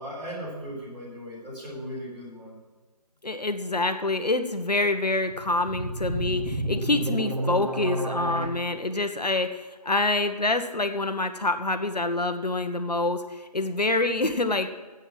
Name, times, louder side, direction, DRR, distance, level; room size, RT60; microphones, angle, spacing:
voice 1, 0.0-2.6, equal, 15° right, -8 dB, 3.8 m, -37 dB
voice 2, 3.2-14.7, left 2 dB, 75° left, 8 dB, 1.4 m, -26 dB
sound 1, 5.2-8.5, right 1 dB, 60° right, 2.1 m, -30 dB
11.0 x 8.3 x 7.6 m, 1.2 s
figure-of-eight pair, 155°, 21 cm